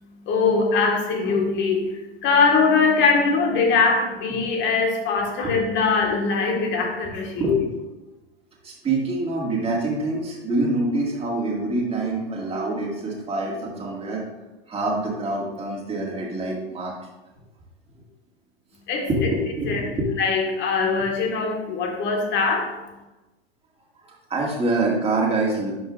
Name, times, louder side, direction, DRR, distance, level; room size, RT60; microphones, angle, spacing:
voice 1, 0.3-1.9 2.2-7.3 18.9-19.1 19.7-19.8 20.2-22.7, left 4 dB, 35° left, 2 dB, 1.7 m, -21 dB
voice 2, 7.4-7.7 8.6-14.2 14.7-16.9 19.1-20.1 24.0-25.8, right 2 dB, 20° right, -2 dB, 2.0 m, -25 dB
11.0 x 5.3 x 2.5 m, 1.1 s
hypercardioid pair, 110°, 32 cm